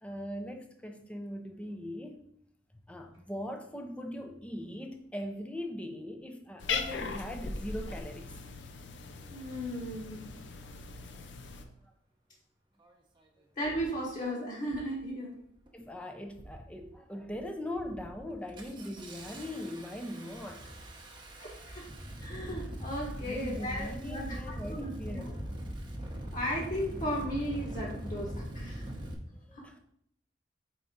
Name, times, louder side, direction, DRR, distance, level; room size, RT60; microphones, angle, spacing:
voice 1, 0.0-2.2 2.9-8.4 11.8-11.9 15.7-20.6 23.2-25.3 29.3-29.8, left 1 dB, 5° left, 5 dB, 0.6 m, -40 dB
Cat, 6.6-11.7, left 4 dB, 75° left, 0.6 m, -39 dB
voice 2, 9.3-10.2 13.6-15.4 21.4-21.9 22.2-25.3 26.3-28.9 29.5-29.7, equal, 45° left, -5 dB, 1.4 m, -36 dB
Engine starting, 12.8-12.9 13.6-13.9 14.6-15.0 15.3-15.9 16.3-16.8 17.2-17.4 17.8-29.1, equal, 25° right, 0.8 m, -41 dB
4.5 x 4.0 x 5.2 m, 0.70 s
head